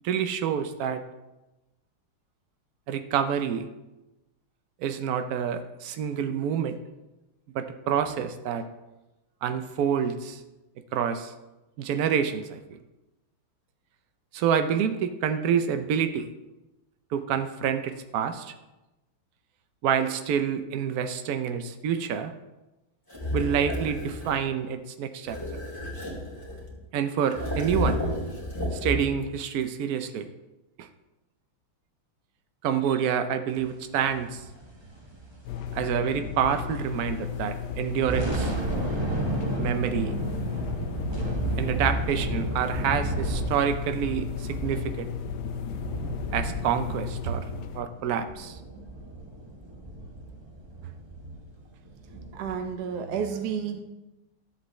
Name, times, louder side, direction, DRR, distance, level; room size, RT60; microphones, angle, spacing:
voice 1, 0.0-1.0 2.9-3.7 4.8-6.8 7.5-8.6 9.4-10.4 10.9-11.3 11.8-12.6 14.3-16.3 17.1-18.5 19.8-22.3 23.3-25.4 26.9-28.0 28.7-30.3 30.8-30.9 32.6-34.4 35.7-38.5 39.6-40.2 41.6-45.1 46.3-47.4 47.7-48.6, right 8 dB, 85° right, 8 dB, 0.8 m, -27 dB
sound 1, 23.1-24.4 25.2-26.8 27.3-29.3, left 1 dB, 10° left, 2.7 m, -31 dB
sound 2, 34.0-36.8 37.1-37.3 37.8-52.6, right 2 dB, 20° right, 0.7 m, -33 dB
sound 3, 35.4-47.8, left 8 dB, 75° left, 1.3 m, -35 dB
voice 2, 52.3-53.8, right 7 dB, 65° right, 5 dB, 1.2 m, -31 dB
13.5 x 8.0 x 3.1 m, 1.0 s
omnidirectional pair, 2.3 m